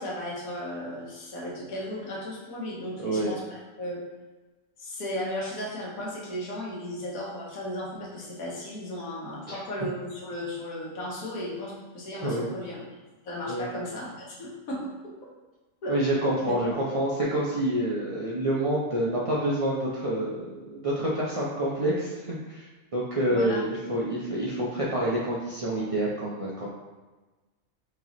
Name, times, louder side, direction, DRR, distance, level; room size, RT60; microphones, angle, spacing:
voice 1, 0.0-4.0 4.8-12.8 13.2-14.9 15.8-15.9 16.4-16.8 23.3-23.7, left 1 dB, 85° left, -4 dB, 1.5 m, -35 dB
voice 2, 3.0-3.3 9.5-9.6 12.2-12.5 13.5-13.7 15.9-22.7 22.9-26.7, right 1 dB, 65° right, -7 dB, 0.3 m, -27 dB
4.6 x 2.8 x 2.9 m, 1.2 s
omnidirectional pair, 1.4 m